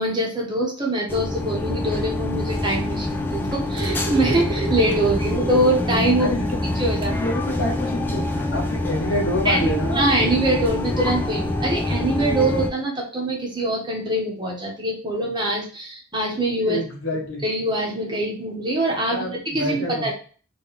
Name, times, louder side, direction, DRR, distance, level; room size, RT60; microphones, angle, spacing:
voice 1, 0.0-6.3 6.8-7.1 9.4-16.8 17.4-20.1, right 1 dB, 20° right, -2 dB, 1.2 m, -23 dB
sound 1, 1.1-12.7, left 1 dB, 10° left, 0.5 m, -25 dB
sound 2, 3.2-6.1 6.5-6.6 7.0-7.2 8.3-8.4, right 5 dB, 75° right, 0.7 m, -32 dB
voice 2, 6.2-10.1 16.6-17.4 19.1-20.1, left 1 dB, 65° left, 0 dB, 1.2 m, -28 dB
3.7 x 3.4 x 4.1 m, 0.39 s
head